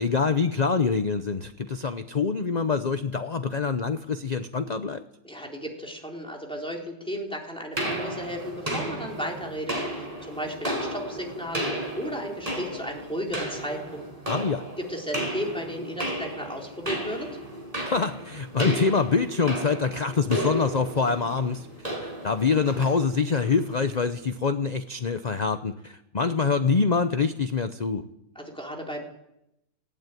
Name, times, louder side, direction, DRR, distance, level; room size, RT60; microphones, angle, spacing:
voice 1, 0.0-5.0 14.3-14.6 17.9-21.7 22.0-28.0, left 5 dB, 45° left, 9 dB, 0.5 m, -25 dB
voice 2, 5.2-11.6 12.0-14.0 14.8-17.3 28.4-29.1, equal, 5° left, 0 dB, 3.9 m, -34 dB
sound 1, 7.8-24.1, right 1 dB, 20° right, 5.6 m, -34 dB
19.0 x 16.0 x 9.3 m, 0.87 s
omnidirectional pair, 1.8 m